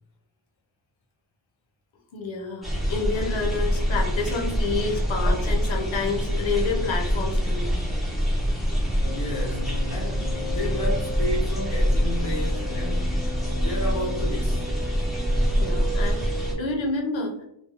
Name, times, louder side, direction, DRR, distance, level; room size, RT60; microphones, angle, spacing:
voice 1, 2.1-7.7 15.6-17.4, left 4 dB, 85° left, 0.7 m, -29 dB
sound 1, 2.6-16.5, equal, ahead, 0.7 m, -25 dB
sound 2, 9.0-16.6, right 1 dB, 85° right, 1.0 m, -36 dB
voice 2, 9.1-13.2 13.6-14.7, left 1 dB, 45° left, 0.5 m, -32 dB
2.3 x 2.2 x 2.8 m
wide cardioid pair, 135°, 45 cm